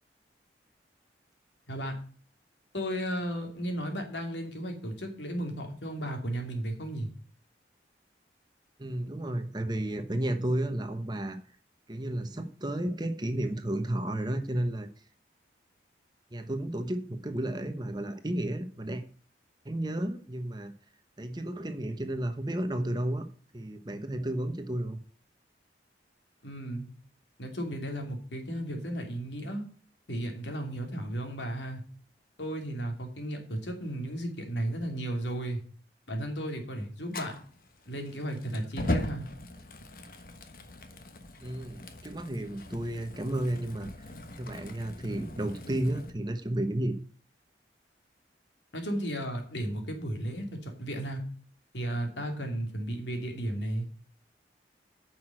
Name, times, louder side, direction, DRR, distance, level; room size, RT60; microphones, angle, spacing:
voice 1, 2.7-7.1 26.4-26.9 27.4-29.6 30.1-31.8 32.4-35.6 36.1-37.3 37.9-39.3 48.7-51.2 51.7-53.9, right 1 dB, 85° left, 4 dB, 2.7 m, -34 dB
voice 2, 8.8-11.4 11.9-14.9 16.3-19.0 19.6-20.7 21.2-23.2 23.5-25.0 41.4-44.1 44.4-46.9, right 1 dB, 25° right, 8 dB, 1.0 m, -32 dB
Fire, 37.1-46.1, left 1 dB, 50° left, 1.3 m, -39 dB
9.4 x 6.0 x 7.7 m, 0.44 s
head